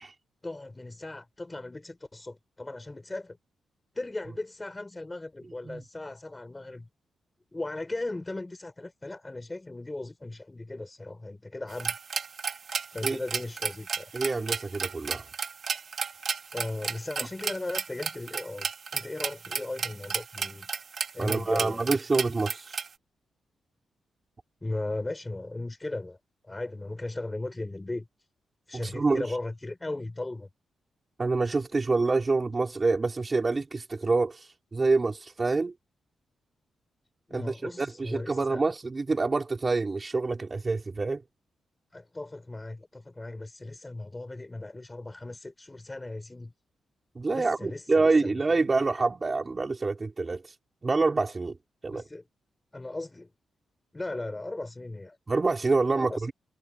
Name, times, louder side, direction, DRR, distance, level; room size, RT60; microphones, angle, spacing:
voice 1, 0.4-3.4 4.0-6.9 7.5-11.9 12.9-14.1 16.5-20.7 21.1-21.9 24.6-26.2 26.4-28.1 28.7-30.5 37.3-38.6 41.9-46.5 47.3-48.6 51.9-52.2 52.7-53.3 53.9-55.2 55.9-56.3, left 2 dB, 15° left, 3.8 m, -37 dB
sound 1, 11.7-22.9, right 6 dB, 50° right, 2.3 m, -34 dB
voice 2, 14.1-15.2 21.2-22.8 28.7-29.3 31.2-35.7 37.3-41.2 47.2-50.5 50.8-51.6 51.8-52.0 55.3-56.3, right 3 dB, 30° right, 4.4 m, -27 dB
cardioid pair, 100°, 0 cm